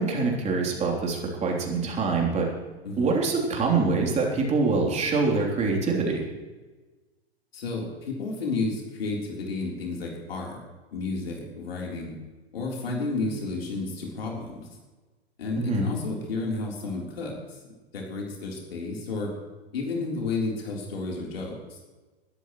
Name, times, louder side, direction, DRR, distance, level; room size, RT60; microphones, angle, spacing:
voice 1, 0.0-2.5 3.0-6.2 15.6-15.9, right 4 dB, 20° right, -1 dB, 3.5 m, -25 dB
voice 2, 2.8-3.2 7.5-10.6 10.9-12.1 12.5-14.6 15.4-17.3 17.9-19.3 19.7-21.6, left 3 dB, 65° left, -1 dB, 3.8 m, -31 dB
21.5 x 13.0 x 3.2 m, 1.2 s
figure-of-eight pair, 100°, 32 cm